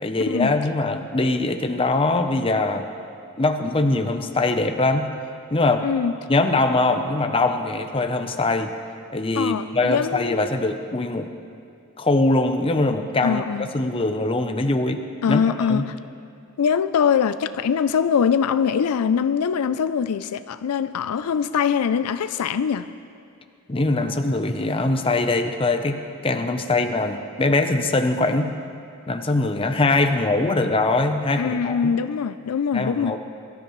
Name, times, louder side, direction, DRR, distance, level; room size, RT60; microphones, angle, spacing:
voice 1, 0.0-2.9 3.4-5.1 5.5-5.9 6.3-8.7 9.1-11.3 12.0-15.4 15.7-15.8 23.7-28.5 29.1-31.9 32.7-33.2, left 2 dB, 25° left, 6 dB, 0.7 m, -22 dB
voice 2, 5.8-6.1 9.4-10.5 13.2-13.7 15.2-15.8 16.6-22.8 31.4-33.2, left 7 dB, 80° left, 12 dB, 0.4 m, -22 dB
23.0 x 13.0 x 3.1 m, 2.4 s
head